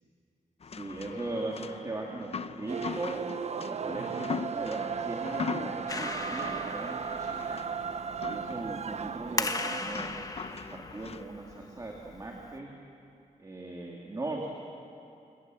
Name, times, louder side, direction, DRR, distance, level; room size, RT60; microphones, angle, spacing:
sound 1, 0.6-11.2, left 5 dB, 45° left, 0.7 m, -41 dB
voice 1, 0.8-2.3 2.6-3.3 3.7-7.7 8.3-12.7 13.4-14.5, right 2 dB, 25° right, -1 dB, 2.4 m, -39 dB
sound 2, 2.7-9.9, right 6 dB, 50° right, 0.5 m, -36 dB
Clapping, 5.9-12.6, left 3 dB, 25° left, 1.2 m, -39 dB
27.5 x 25.5 x 7.7 m, 2.6 s
wide cardioid pair, 155°, 14 cm